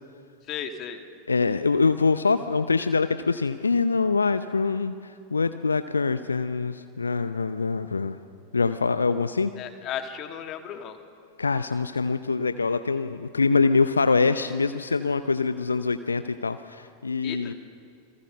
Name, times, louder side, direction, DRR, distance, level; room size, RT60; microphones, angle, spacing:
voice 1, 0.5-1.0 9.6-11.0 17.2-17.5, left 9 dB, 35° left, 6 dB, 2.1 m, -35 dB
voice 2, 1.3-8.2 8.5-9.5 11.4-17.5, left 4 dB, 75° left, 11 dB, 0.7 m, -24 dB
29.0 x 22.5 x 6.5 m, 2.2 s
figure-of-eight pair, 90°, 0 cm